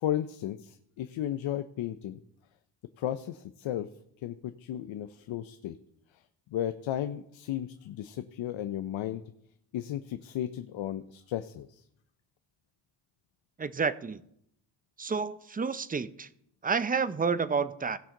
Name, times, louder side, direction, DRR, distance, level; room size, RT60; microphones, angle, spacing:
voice 1, 0.0-2.2 3.0-3.9 4.2-5.8 6.5-9.2 9.7-11.8, left 11 dB, 80° left, 11 dB, 0.6 m, -34 dB
voice 2, 13.6-14.2 15.0-16.3 16.6-18.0, right 5 dB, 20° right, 15 dB, 0.5 m, -30 dB
17.5 x 5.8 x 3.8 m, 0.74 s
cardioid pair, 80°, 45 cm